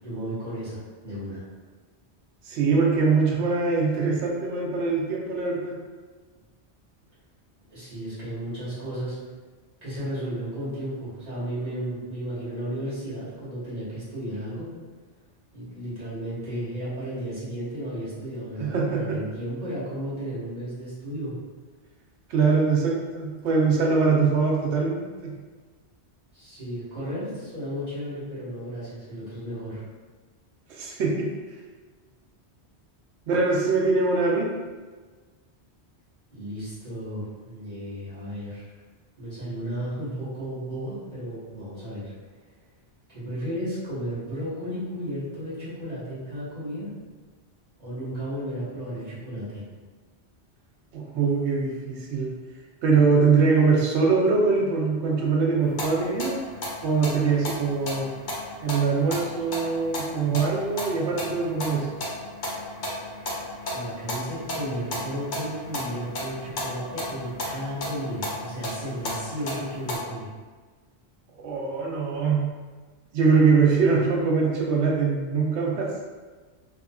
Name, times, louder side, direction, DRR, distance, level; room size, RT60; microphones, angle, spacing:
voice 1, 0.0-1.4 7.7-9.2 9.8-14.7 15.5-21.3 26.3-29.8 36.3-38.7 39.2-42.1 43.1-46.9 47.8-49.6 63.7-70.3, equal, 40° right, -11 dB, 1.2 m, -34 dB
voice 2, 2.4-5.7 18.6-19.2 22.3-25.3 30.7-31.3 33.3-34.5 50.9-52.3 52.8-56.4 56.8-58.1 58.6-62.0 71.4-72.4 73.1-75.9, right 4 dB, 85° right, -2 dB, 0.9 m, -23 dB
sound 1, 55.6-70.0, left 1 dB, 90° left, 0.9 m, -34 dB
2.7 x 2.4 x 2.2 m, 1.4 s
omnidirectional pair, 1.1 m